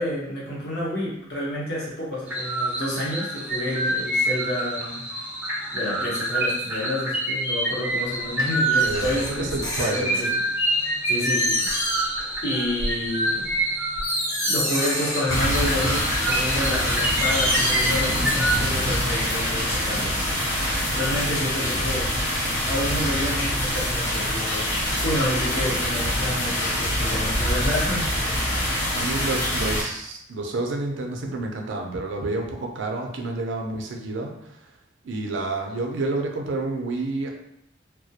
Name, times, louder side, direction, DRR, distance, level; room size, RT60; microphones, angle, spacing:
voice 1, 0.0-5.0 5.7-9.5 9.8-10.2 11.1-11.7 12.4-13.5 14.4-20.1 20.9-22.2 22.6-28.0, left 1 dB, 60° left, -5 dB, 0.8 m, -29 dB
sound 1, 2.3-18.6, right 1 dB, 10° right, 0.4 m, -27 dB
sound 2, 8.4-10.4 10.9-11.0 11.2-12.3 12.6-12.9 13.5-13.6 14.0-15.8 16.3-18.4 18.7-18.8, equal, 20° left, 0.7 m, -28 dB
voice 2, 8.8-10.4 29.0-34.6 35.0-37.3, right 2 dB, 70° right, 2 dB, 0.4 m, -29 dB
sound 3, 15.3-29.8, equal, 90° left, 1.2 m, -25 dB
2.2 x 2.0 x 2.7 m, 0.80 s
head